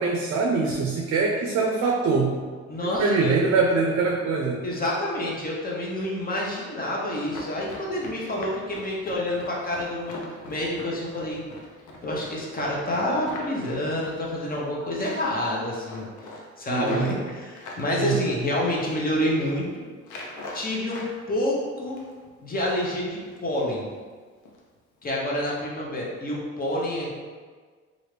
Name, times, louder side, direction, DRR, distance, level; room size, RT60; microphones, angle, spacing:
voice 1, 0.0-2.4 2.8-4.6 16.7-17.1 18.0-18.2, right 4 dB, 60° right, 0 dB, 0.5 m, -23 dB
voice 2, 2.7-3.4 4.6-11.4 12.0-16.3 16.6-19.8 20.5-22.0 22.4-23.9 25.0-27.1, left 1 dB, 30° left, -3 dB, 0.8 m, -28 dB
Run, 7.2-14.7 15.0-15.4 15.7-17.9 18.4-19.0 19.3-19.5 20.0-21.1 21.5-22.3 22.6-22.8 23.2-23.5 23.8-24.0 24.4-24.6 25.0-25.1, left 2 dB, 75° left, 0.7 m, -41 dB
3.1 x 2.5 x 3.2 m, 1.5 s
cardioid pair, 90°, 30 cm